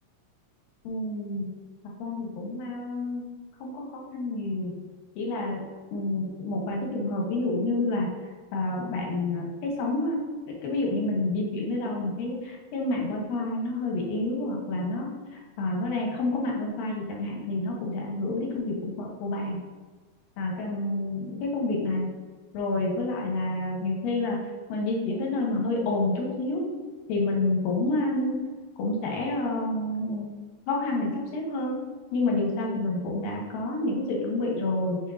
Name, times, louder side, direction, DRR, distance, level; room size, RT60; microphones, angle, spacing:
voice 1, 0.8-1.5 2.0-3.3 3.6-4.7 5.2-5.6 5.9-8.1 8.5-19.6 20.4-22.1 22.5-24.4 24.7-26.6 27.1-28.4 28.8-30.3 30.7-31.8 32.1-35.0, left 2 dB, 85° left, -1 dB, 2.7 m, -29 dB
6.4 x 5.9 x 2.6 m, 1.4 s
omnidirectional pair, 3.9 m